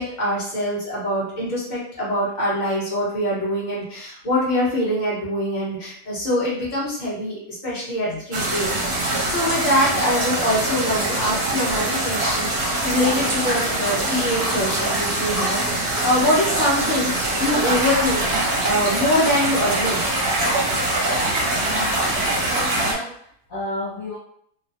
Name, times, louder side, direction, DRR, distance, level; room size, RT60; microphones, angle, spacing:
voice 1, 0.0-20.0, left 1 dB, 35° left, -7 dB, 1.0 m, -24 dB
voice 2, 8.0-8.5 16.3-16.4 21.6-22.0 22.4-24.2, left 2 dB, 70° left, -7 dB, 0.9 m, -33 dB
sound 1, 8.3-22.9, right 2 dB, 70° right, 1.3 m, -23 dB
Clock, 13.2-22.8, equal, 5° right, 0.8 m, -35 dB
3.1 x 2.2 x 2.6 m, 0.67 s
omnidirectional pair, 1.7 m